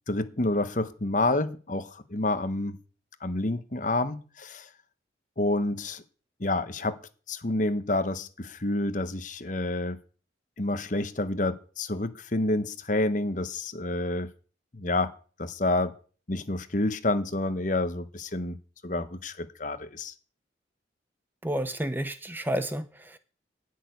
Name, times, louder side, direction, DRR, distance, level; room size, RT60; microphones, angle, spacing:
voice 1, 0.1-2.8 3.2-4.7 5.4-6.0 6.4-7.0 7.3-10.0 10.6-14.3 14.7-15.1 15.4-15.9 16.3-18.6 18.8-20.1, left 2 dB, 45° left, 1.1 m, -28 dB
voice 2, 21.4-23.2, right 1 dB, 10° right, 0.6 m, -31 dB
12.0 x 6.7 x 9.5 m
head